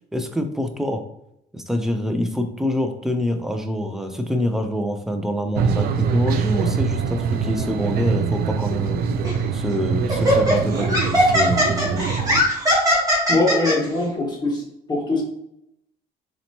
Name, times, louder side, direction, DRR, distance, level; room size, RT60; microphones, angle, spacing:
voice 1, 0.1-1.0 1.5-9.0 9.5-12.2, equal, ahead, 6 dB, 0.5 m, -25 dB
sound 1, 5.5-12.4, right 6 dB, 65° right, 0.4 m, -24 dB
Laughter, 9.2-9.5 10.1-13.7, equal, 20° right, 1.3 m, -19 dB
voice 2, 13.3-14.6 14.9-15.2, left 2 dB, 25° left, -2 dB, 1.3 m, -22 dB
4.2 x 2.9 x 2.8 m, 0.78 s
cardioid pair, 110°, 17 cm